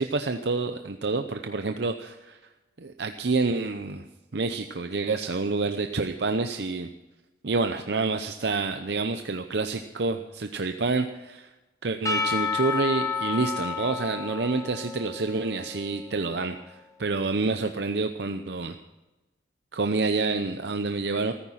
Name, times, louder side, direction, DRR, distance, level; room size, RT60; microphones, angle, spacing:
voice 1, 0.0-2.4 2.8-4.0 4.3-6.9 7.4-11.5 11.8-18.8 19.7-21.3, right 3 dB, 70° right, 7 dB, 0.7 m, -28 dB
Percussion / Church bell, 12.0-16.4, left 5 dB, 20° left, 1.2 m, -31 dB
15.0 x 14.0 x 5.7 m, 1.1 s
head